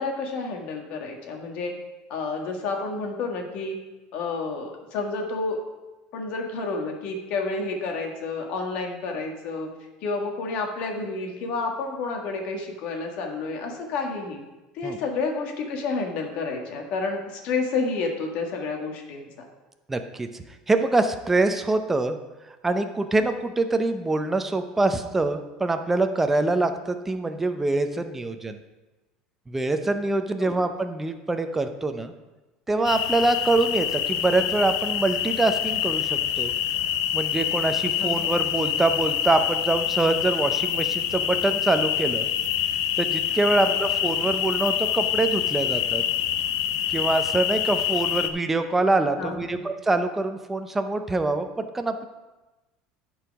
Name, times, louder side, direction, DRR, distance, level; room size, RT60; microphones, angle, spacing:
voice 1, 0.0-1.7 2.1-3.8 4.1-5.6 6.1-9.7 10.0-14.4 14.7-19.5 30.4-30.6 38.0-38.1 43.6-43.8 49.2-49.6, left 3 dB, 60° left, 2 dB, 1.6 m, -30 dB
voice 2, 19.9-20.3 20.7-22.2 22.6-28.6 29.5-32.1 32.7-36.5 37.1-42.3 43.0-46.0 46.9-52.1, right 2 dB, 10° right, 7 dB, 0.6 m, -24 dB
sound 1, 32.8-48.3, left 10 dB, 90° left, 0.6 m, -26 dB
10.5 x 4.7 x 5.1 m, 1.1 s
cardioid pair, 135°, 2 cm